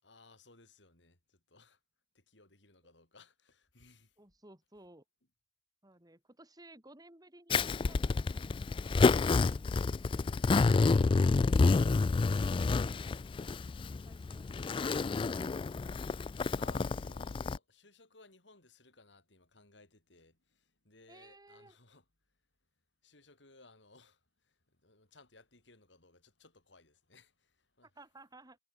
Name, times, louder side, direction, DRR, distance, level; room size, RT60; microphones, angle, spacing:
voice 1, 0.0-1.8 2.1-4.1 16.5-22.0 23.0-24.2 24.8-27.9, left 3 dB, 75° left, 5.6 m, -61 dB
voice 2, 4.2-5.0 5.8-8.4 8.9-10.4 13.9-15.1 21.1-21.8 27.8-28.6, right 2 dB, 20° right, 6.2 m, -57 dB
Zipper (clothing), 7.5-17.6, left 4 dB, 30° left, 0.3 m, -29 dB
head